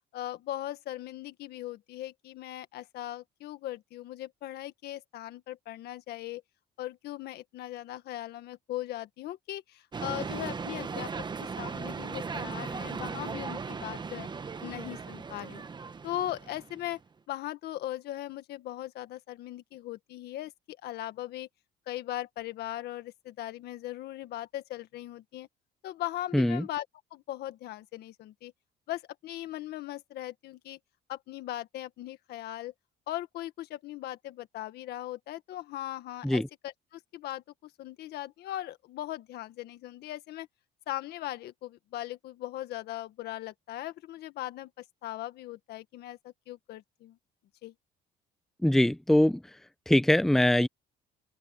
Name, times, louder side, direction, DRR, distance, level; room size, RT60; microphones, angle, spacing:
voice 1, 0.1-6.4 6.8-14.3 14.6-15.6 16.0-17.0 17.3-21.5 21.9-25.5 25.8-26.8 27.1-28.5 28.9-30.8 31.1-32.7 33.1-40.5 40.9-47.2 47.6-47.7, left 14 dB, 75° left, 1.7 m, -39 dB
sound 1, 9.9-17.0, right 5 dB, 25° right, 1.2 m, -37 dB
voice 2, 26.3-26.6 36.2-36.5 48.6-49.4 49.9-50.7, left 1 dB, ahead, 0.8 m, -22 dB
open air
cardioid pair, 110°, 17 cm